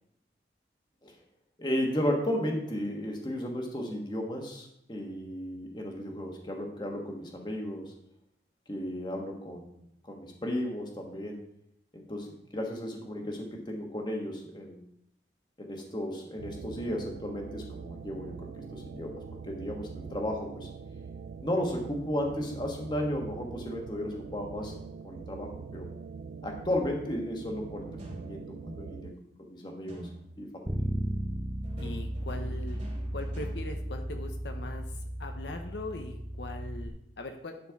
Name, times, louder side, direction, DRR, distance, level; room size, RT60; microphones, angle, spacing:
voice 1, 1.6-7.9 8.7-11.4 11.9-14.8 15.6-20.7 21.4-24.7 25.0-25.9 26.4-29.1 29.4-30.1 30.4-30.8, left 1 dB, 25° left, 1 dB, 1.3 m, -34 dB
sound 1, 16.4-29.1, right 5 dB, 85° right, 0.3 m, -43 dB
sound 2, 24.6-25.3 28.0-28.8 29.9-30.6 31.6-34.6, right 1 dB, 40° right, 3.3 m, -46 dB
Bass guitar, 30.7-36.9, right 1 dB, 5° right, 0.5 m, -35 dB
voice 2, 31.8-32.8 33.1-37.6, left 2 dB, 75° left, 5 dB, 0.8 m, -40 dB
11.0 x 4.4 x 4.6 m, 0.76 s
head